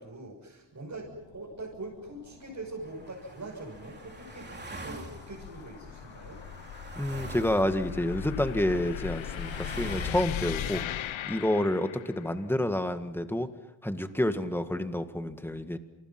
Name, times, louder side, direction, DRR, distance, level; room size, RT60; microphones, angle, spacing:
voice 1, 0.0-6.4 10.5-10.8, right 2 dB, 40° right, -3 dB, 6.9 m, -43 dB
sound 1, 0.9-12.3, left 11 dB, 85° left, 0.9 m, -39 dB
sound 2, 2.8-10.7, right 2 dB, 20° right, 3.3 m, -45 dB
voice 2, 7.0-10.8 11.2-13.5 13.8-15.8, left 1 dB, 5° left, 8 dB, 1.8 m, -29 dB
29.0 x 28.5 x 6.0 m, 0.99 s
wide cardioid pair, 120°, 46 cm